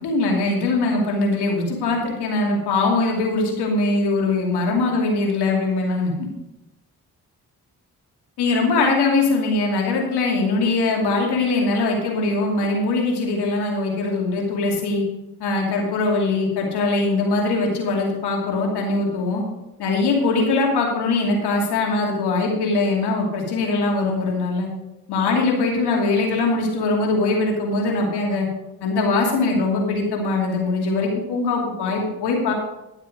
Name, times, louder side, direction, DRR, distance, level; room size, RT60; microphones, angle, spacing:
voice 1, 0.0-6.1 8.4-15.0 15.4-19.4 19.8-24.7 25.1-28.5 28.8-32.5, left 3 dB, 85° left, -1 dB, 2.7 m, -21 dB
11.5 x 7.4 x 5.2 m, 0.95 s
supercardioid pair, 40°, 39 cm